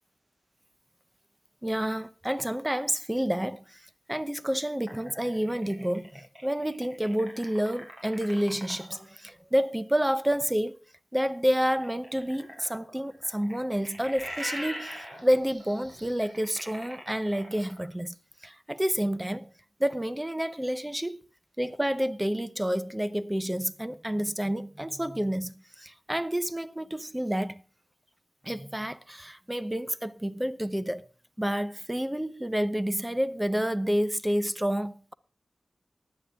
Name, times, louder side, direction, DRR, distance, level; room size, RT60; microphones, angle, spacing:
voice 1, 1.6-10.8 11.1-18.1 18.4-19.5 19.8-21.3 21.6-27.6 28.4-31.1 31.4-35.1, equal, 10° right, 0.6 m, -29 dB
sound 1, 4.9-9.0 11.8-17.9, equal, 35° right, 6.0 m, -41 dB
16.5 x 10.5 x 3.4 m
wide cardioid pair, 100°, 0 cm